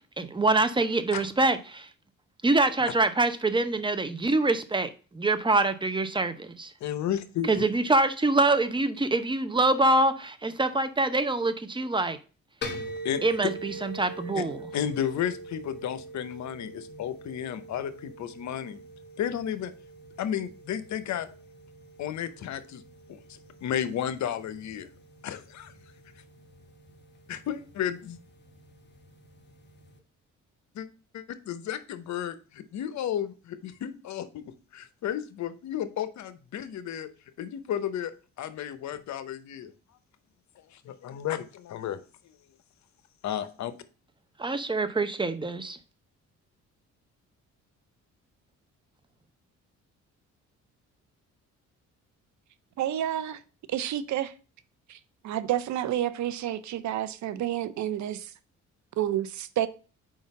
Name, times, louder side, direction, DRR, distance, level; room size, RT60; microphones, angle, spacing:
voice 1, 0.2-1.9 2.4-6.7 7.5-12.2 13.2-14.6 44.4-45.8, right 2 dB, 15° right, 0.7 m, -25 dB
voice 2, 6.8-7.7 12.7-13.2 14.3-14.4 14.7-18.8 19.2-19.7 20.2-21.3 22.0-22.8 23.1-24.9 25.2-25.7 27.3-28.2 30.7-30.9 31.1-37.1 37.4-38.1 38.4-39.7 40.6-42.0 43.2-43.7, left 10 dB, 70° left, 0.8 m, -33 dB
sound 1, 12.6-30.0, right 1 dB, 35° left, 1.4 m, -44 dB
voice 3, 52.8-53.4 53.7-54.3 54.9-55.0 55.2-58.3 59.0-59.7, right 11 dB, 70° right, 0.6 m, -29 dB
4.8 x 3.9 x 5.3 m
cardioid pair, 90°, 30 cm